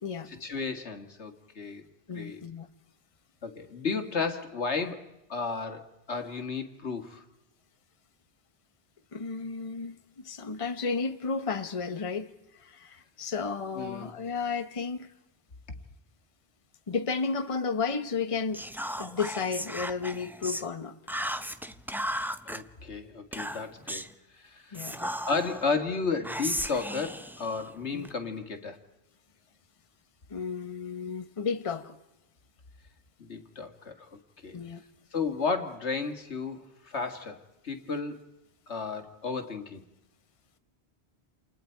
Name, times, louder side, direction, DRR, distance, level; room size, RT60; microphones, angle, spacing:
voice 1, 0.3-1.8 2.1-2.4 3.4-7.2 13.8-14.1 22.5-24.0 24.4-28.8 33.2-34.1 34.4-34.6 35.1-37.4 37.6-38.2 38.7-39.8, left 4 dB, 90° left, 2.2 m, -33 dB
voice 2, 2.1-2.7 9.1-9.9 10.2-12.3 12.6-15.1 16.9-18.6 19.0-20.9 24.7-25.0 27.9-28.1 30.3-31.9 34.5-34.8, left 5 dB, 30° left, 1.1 m, -32 dB
Whispering, 18.5-20.7 21.1-22.6 23.3-24.1 24.7-25.6 26.2-28.1, equal, ahead, 0.6 m, -35 dB
29.0 x 28.0 x 4.6 m
omnidirectional pair, 1.1 m